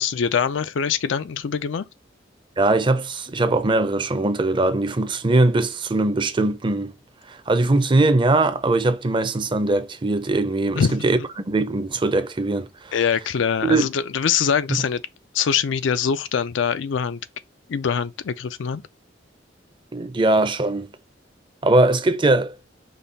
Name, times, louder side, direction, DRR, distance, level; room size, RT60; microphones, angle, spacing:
voice 1, 0.0-1.8 10.7-11.0 12.9-15.0 15.3-17.2 17.7-18.8, left 7 dB, 80° left, 0.4 m, -23 dB
voice 2, 2.6-6.9 7.3-11.2 11.5-12.7 13.6-13.9 19.9-20.9 21.6-22.5, right 2 dB, 25° right, 0.6 m, -20 dB
5.2 x 2.3 x 4.0 m
head